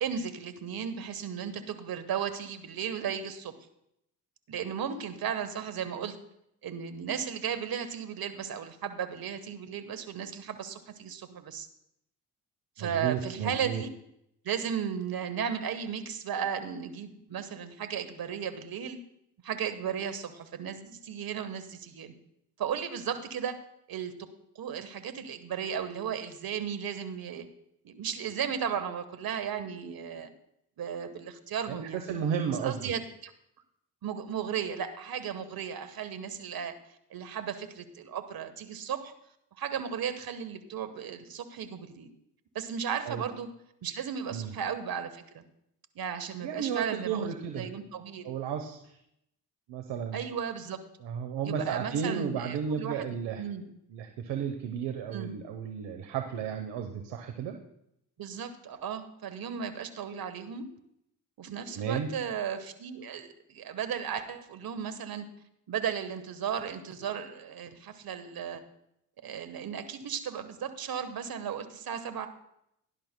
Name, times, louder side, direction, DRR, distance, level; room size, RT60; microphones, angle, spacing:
voice 1, 0.0-3.5 4.5-6.2 6.6-11.7 12.8-13.9 14.4-19.0 19.4-22.1 22.6-23.6 23.9-24.3 24.5-27.5 27.8-30.3 30.8-32.0 32.6-33.3 34.0-36.8 37.1-39.1 39.6-42.1 42.5-43.5 43.8-45.4 45.9-47.3 47.6-48.3 50.1-50.8 51.4-53.6 55.1-55.4 58.2-60.7 61.4-65.3 65.7-68.6 69.2-72.3, right 8 dB, 55° right, 9 dB, 1.4 m, -35 dB
voice 2, 12.8-13.8 31.7-32.9 43.0-43.3 44.3-44.5 46.4-47.7 48.2-49.0 49.7-50.2 51.0-53.4 53.9-57.6 61.7-62.1, right 7 dB, 70° right, 5 dB, 1.1 m, -33 dB
17.5 x 10.5 x 2.2 m, 0.77 s
hypercardioid pair, 55°, 44 cm